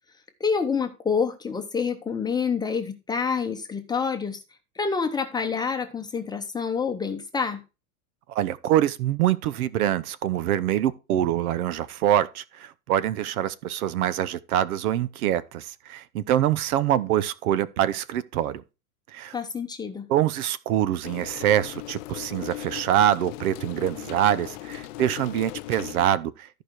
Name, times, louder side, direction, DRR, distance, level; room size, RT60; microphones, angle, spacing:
voice 1, 0.4-4.4 4.7-7.6 19.3-20.1, left 5 dB, 10° left, 0.8 m, -27 dB
voice 2, 8.3-18.6 19.1-19.3 20.1-26.5, right 11 dB, 70° right, 1.0 m, -25 dB
sound 1, 21.0-26.1, left 19 dB, 55° left, 0.6 m, -38 dB
13.5 x 5.1 x 4.5 m
supercardioid pair, 145°, 45 cm